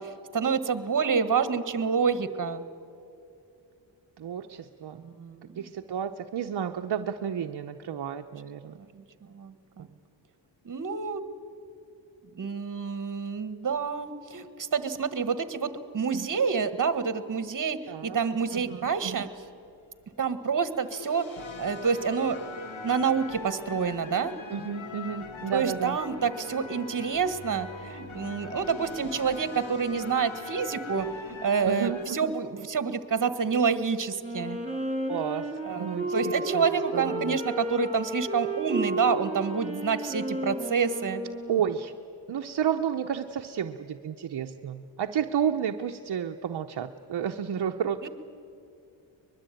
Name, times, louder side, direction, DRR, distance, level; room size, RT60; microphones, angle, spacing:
voice 1, 0.0-2.6 5.0-5.6 8.7-9.9 10.6-11.2 12.3-19.3 20.2-21.3 21.6-22.4 22.8-24.3 25.5-34.6 35.6-41.2 48.0-48.1, right 6 dB, 40° right, 12 dB, 1.4 m, -28 dB
voice 2, 4.2-5.1 5.5-8.8 16.1-16.3 17.9-18.2 18.5-19.3 24.5-26.0 31.6-32.3 35.1-37.4 41.5-41.9 42.3-48.1, right 8 dB, 60° right, 4 dB, 0.8 m, -31 dB
sound 1, 18.5-19.7 20.5-32.1, left 3 dB, 80° left, 1.7 m, -41 dB
Wind instrument woodwind instrument, 34.2-41.9, right 1 dB, 15° right, 4.6 m, -33 dB
23.5 x 21.5 x 9.0 m, 2.5 s
wide cardioid pair, 115°, 46 cm